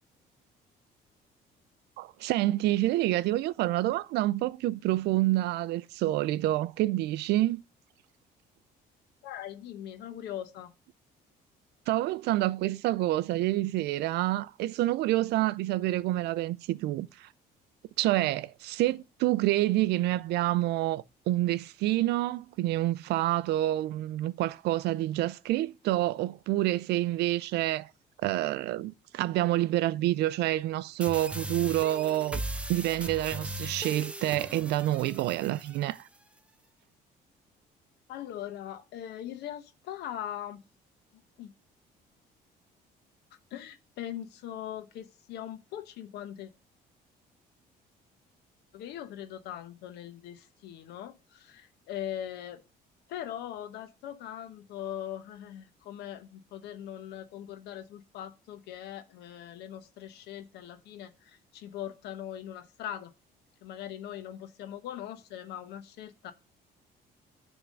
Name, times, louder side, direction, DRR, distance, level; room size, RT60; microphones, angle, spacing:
voice 1, 2.0-7.6 11.9-17.3 18.0-27.9 28.2-32.4 32.7-36.0, right 15 dB, 80° right, 0.5 m, -28 dB
voice 2, 9.2-10.7 38.1-40.6 41.1-41.5 43.5-46.5 48.7-52.6 53.1-63.1 63.6-66.3, left 11 dB, 80° left, 1.0 m, -41 dB
sound 1, 31.0-36.0, right 1 dB, 5° right, 0.7 m, -38 dB
10.0 x 3.6 x 6.4 m
cardioid pair, 110°, 17 cm